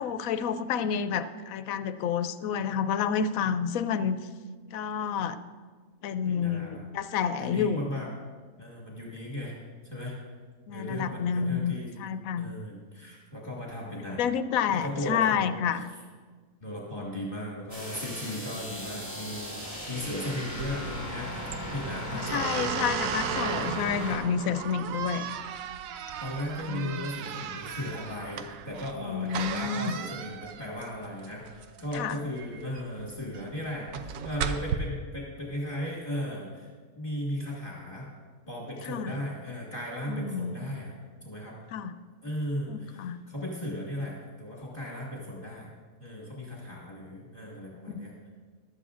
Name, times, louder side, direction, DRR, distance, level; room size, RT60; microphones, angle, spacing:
voice 1, 0.0-4.2 4.7-5.4 6.0-7.8 10.7-12.5 14.2-15.9 22.1-25.3 26.7-27.0 29.0-30.0 31.9-32.2 38.9-39.1 40.1-40.5 41.7-41.9 42.7-43.2 47.9-48.1, left 7 dB, 90° left, 12 dB, 1.0 m, -29 dB
voice 2, 6.3-6.8 7.4-8.1 8.6-9.6 9.8-10.2 10.7-11.9 12.3-14.2 14.7-15.8 16.6-22.7 26.2-38.1 38.5-41.6 42.2-45.7 46.0-48.3, left 1 dB, 35° left, -5 dB, 1.8 m, -36 dB
sound 1, 17.7-24.2, equal, 10° right, 2.8 m, -38 dB
sound 2, 20.5-34.8, right 8 dB, 80° right, 1.0 m, -36 dB
15.5 x 11.5 x 2.5 m, 1.5 s
omnidirectional pair, 1.4 m